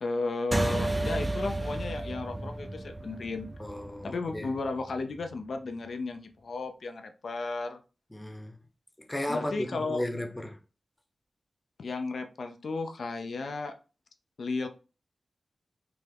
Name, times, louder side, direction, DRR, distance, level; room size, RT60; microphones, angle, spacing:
voice 1, 0.0-3.5 4.0-7.8 9.3-10.0 11.8-13.7 14.4-14.7, left 3 dB, 75° left, 0.4 m, -34 dB
sound 1, 0.5-5.3, right 2 dB, 20° right, 0.5 m, -32 dB
voice 2, 3.6-4.5 8.1-8.6 9.1-10.6, left 1 dB, 20° left, 0.7 m, -35 dB
3.5 x 2.0 x 3.3 m
cardioid pair, 45°, 0 cm